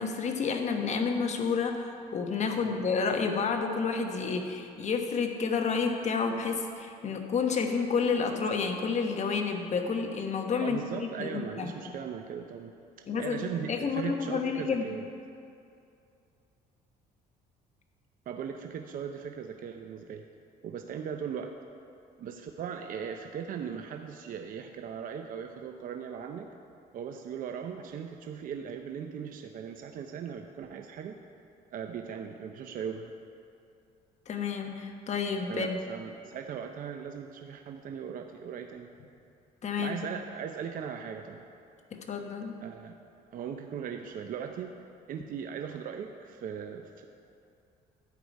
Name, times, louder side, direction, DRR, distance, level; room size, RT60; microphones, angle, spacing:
voice 1, 0.0-11.7 13.1-14.8 34.3-35.8 39.6-39.9 41.9-42.5, left 5 dB, 45° left, 4 dB, 1.2 m, -30 dB
voice 2, 10.6-12.7 13.2-15.0 18.3-20.2 20.6-21.5 22.2-26.5 26.9-31.2 31.7-33.1 35.5-38.9 39.8-41.4 42.6-43.0 43.3-44.7 45.1-47.0, right 7 dB, 55° right, 4 dB, 0.7 m, -38 dB
11.5 x 5.0 x 8.4 m, 2.5 s
cardioid pair, 110°, 17 cm